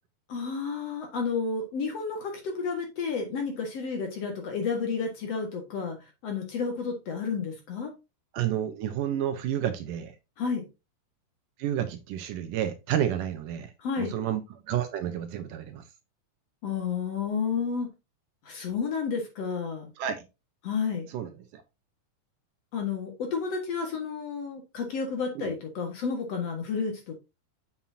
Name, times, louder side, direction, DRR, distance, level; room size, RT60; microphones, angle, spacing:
voice 1, 0.3-6.0 6.2-7.9 10.4-10.6 13.8-14.1 16.6-17.9 18.5-19.9 20.6-21.1 22.7-27.1, left 5 dB, 50° left, 2.3 m, -31 dB
voice 2, 8.3-10.1 11.6-15.8 20.0-20.2 21.1-21.6 25.4-25.5, right 10 dB, 70° right, 2.3 m, -30 dB
7.4 x 7.2 x 2.7 m
omnidirectional pair, 4.2 m